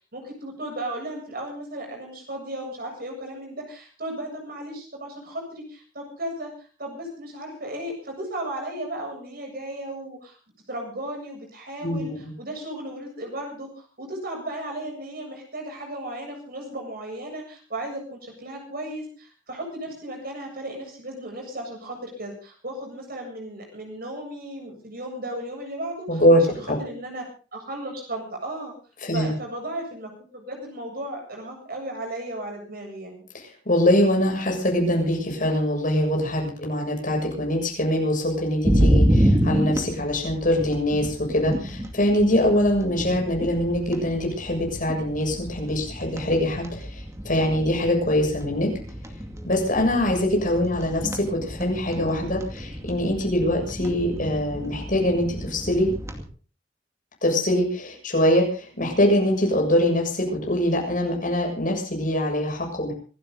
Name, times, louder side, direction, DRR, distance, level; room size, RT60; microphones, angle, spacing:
voice 1, 0.1-10.4 10.7-26.2 26.6-27.2 27.5-28.7 29.1-33.3, right 1 dB, 50° right, 2 dB, 7.6 m, -35 dB
voice 2, 11.8-12.3 26.1-26.8 29.0-29.4 33.7-48.7 49.4-55.9 57.2-62.9, left 1 dB, 45° left, 1 dB, 7.1 m, -23 dB
sound 1, 38.6-56.2, equal, 15° right, 2.3 m, -28 dB
26.0 x 12.5 x 4.0 m, 0.38 s
head